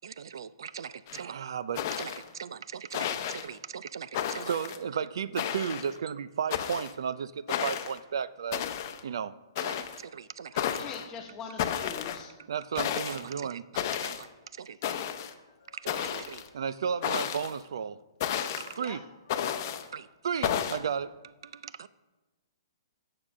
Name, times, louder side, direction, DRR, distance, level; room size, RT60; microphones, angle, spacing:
voice 1, 0.0-8.7 9.0-10.5 12.5-14.3 14.6-15.0 15.7-18.0 18.4-19.0 19.9-21.9, right 7 dB, 70° right, 17 dB, 0.4 m, -35 dB
sound 1, 1.1-1.2 1.8-2.3 2.9-3.5 4.1-4.8 5.4-5.9 6.5-6.9 7.5-8.0 8.5-9.0 9.6-10.0 10.6-11.0 11.6-12.2 12.8-13.2 13.8-14.2 14.8-15.3 15.9-16.5 17.0-17.6 18.2-18.7 19.3-19.9 20.4-20.8, left 9 dB, 40° left, 0.7 m, -32 dB
voice 2, 10.5-12.3 18.8-19.1, left 6 dB, 20° left, 4 dB, 1.1 m, -43 dB
voice 3, 14.8-15.8 18.3-18.8 21.5-21.6, left 9 dB, 70° left, 10 dB, 0.7 m, -62 dB
9.5 x 6.8 x 6.1 m, 1.2 s
hypercardioid pair, 160°, 2 cm